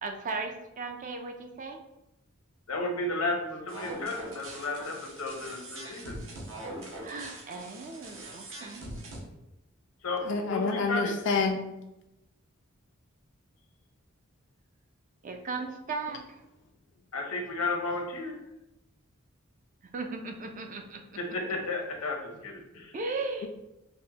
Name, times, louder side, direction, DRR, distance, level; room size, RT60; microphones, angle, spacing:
voice 1, 0.0-1.8 7.0-8.9 15.2-16.4 19.9-21.2 22.9-23.5, right 3 dB, 35° right, 4 dB, 0.4 m, -36 dB
voice 2, 2.7-6.2 10.0-11.1 17.1-18.4 21.2-22.9, left 2 dB, 85° left, 2 dB, 0.7 m, -33 dB
sound 1, 3.7-9.2, right 1 dB, 60° right, 0.8 m, -42 dB
voice 3, 10.2-11.7, left 4 dB, 55° left, 4 dB, 0.3 m, -28 dB
5.1 x 2.1 x 2.8 m, 0.91 s
head